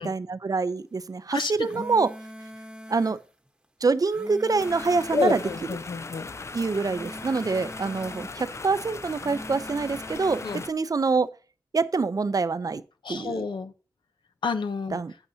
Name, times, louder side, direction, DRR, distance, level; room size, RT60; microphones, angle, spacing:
voice 1, 0.0-2.1 2.9-3.2 3.8-5.4 6.5-11.3 11.7-12.8 13.1-13.4 14.9-15.1, right 4 dB, 50° right, 0.6 m, -25 dB
voice 2, 1.3-1.8 5.1-6.3 10.4-10.6 13.0-13.7 14.4-15.0, left 4 dB, 75° left, 0.9 m, -29 dB
sound 1, 1.4-3.2 3.9-5.7 6.6-8.4 9.0-10.7, equal, 10° right, 1.1 m, -43 dB
sound 2, 4.6-10.7, left 3 dB, 35° left, 0.4 m, -39 dB
11.0 x 8.0 x 2.8 m
wide cardioid pair, 70°, 8 cm